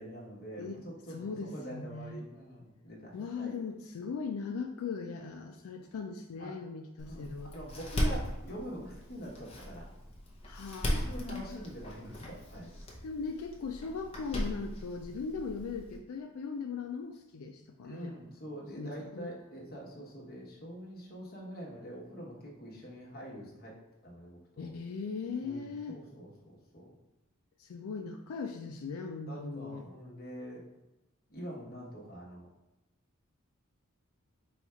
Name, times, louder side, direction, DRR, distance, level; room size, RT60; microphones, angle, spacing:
voice 1, 0.0-3.6 6.4-6.5 7.0-9.9 11.1-12.7 17.8-23.7 24.0-24.7 25.4-26.9 29.3-30.6 31.3-32.5, equal, 45° left, -3 dB, 1.1 m, -45 dB
voice 2, 1.1-2.2 3.1-7.5 10.4-11.8 13.0-18.1 18.8-19.3 24.6-26.0 27.6-29.9, left 5 dB, 90° left, 3 dB, 0.4 m, -39 dB
Door, 7.0-16.0, equal, 30° left, 0.7 m, -38 dB
4.2 x 2.3 x 4.3 m, 0.97 s
head